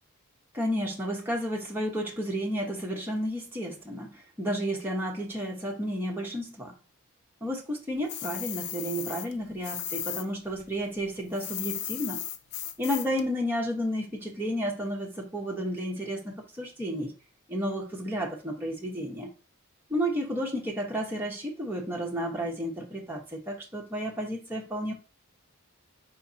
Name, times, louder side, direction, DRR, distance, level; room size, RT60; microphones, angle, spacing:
voice 1, 0.5-6.7 7.4-12.2 12.8-17.1 17.5-19.3 19.9-24.9, equal, 10° right, 0.9 m, -32 dB
sound 1, 8.1-10.3 10.5-13.2, left 11 dB, 45° left, 0.3 m, -36 dB
5.0 x 3.3 x 2.7 m
head